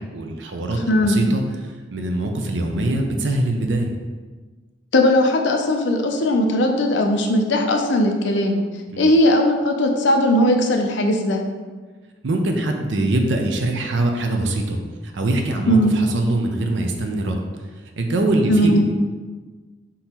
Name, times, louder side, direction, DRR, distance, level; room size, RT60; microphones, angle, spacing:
voice 1, 0.0-3.9 8.9-9.0 12.2-17.4 18.0-18.8, right 2 dB, 75° right, 3 dB, 0.6 m, -23 dB
voice 2, 0.9-1.2 4.9-8.6 9.0-11.4 15.7-15.9 18.5-18.8, left 1 dB, 75° left, 3 dB, 0.5 m, -18 dB
3.8 x 2.9 x 4.3 m, 1.4 s
head